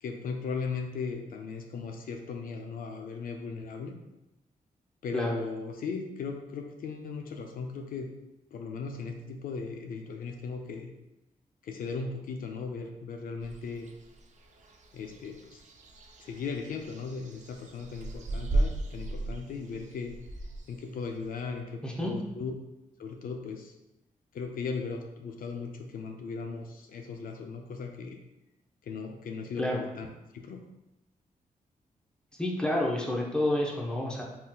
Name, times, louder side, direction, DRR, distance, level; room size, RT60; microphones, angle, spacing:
voice 1, 0.0-3.9 5.0-8.1 8.5-10.9 11.6-13.9 14.9-15.6 16.2-20.2 20.7-22.6 23.0-23.7 24.3-28.2 28.8-30.1 30.3-30.6, left 4 dB, 70° left, 3 dB, 0.4 m, -37 dB
sound 1, 13.4-21.4, right 2 dB, 55° right, 0.4 m, -36 dB
voice 2, 21.8-22.1 29.6-29.8 32.4-34.2, left 1 dB, 5° left, -1 dB, 0.6 m, -29 dB
3.6 x 2.7 x 2.2 m, 0.94 s
cardioid pair, 95°, 15 cm